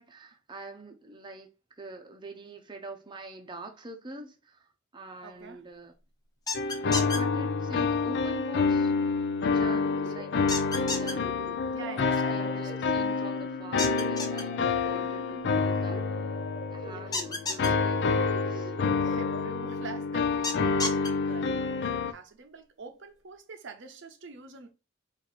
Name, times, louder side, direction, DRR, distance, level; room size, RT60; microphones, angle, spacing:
voice 1, 0.0-5.9 6.8-8.9 9.4-10.4 10.9-11.3 12.0-16.3 16.7-18.1 18.5-18.7, right 2 dB, 25° right, 0.7 m, -45 dB
voice 2, 5.2-5.6 9.6-10.0 11.7-12.7 15.0-15.1 16.8-17.3 19.0-24.7, right 5 dB, 65° right, 0.7 m, -45 dB
sound 1, 6.5-22.1, left 4 dB, 60° left, 0.4 m, -28 dB
sound 2, 6.5-7.2 10.5-11.1 13.8-14.4 17.1-17.7 20.4-21.1, left 3 dB, 20° left, 0.8 m, -31 dB
sound 3, 9.9-19.4, equal, 45° left, 1.5 m, -44 dB
4.4 x 2.6 x 4.1 m
head